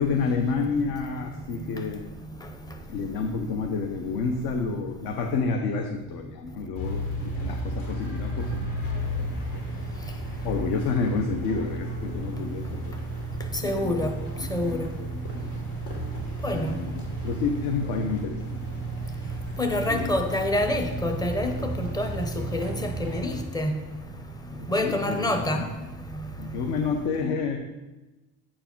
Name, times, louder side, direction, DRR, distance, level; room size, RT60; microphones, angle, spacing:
voice 1, 0.0-2.0 2.9-9.9 10.4-13.1 13.6-14.1 14.3-15.5 16.5-19.0 19.9-20.1 24.5-25.3 26.4-27.6, left 5 dB, 60° left, 0.9 m, -30 dB
voice 2, 2.4-2.8 13.5-14.9 16.4-16.8 19.6-23.9 24.5-25.7 26.1-26.3, left 1 dB, 10° left, 0.7 m, -28 dB
sound 1, 6.8-23.4, right 2 dB, 80° left, 3.0 m, -33 dB
8.6 x 4.8 x 5.8 m
cardioid pair, 145°, 39 cm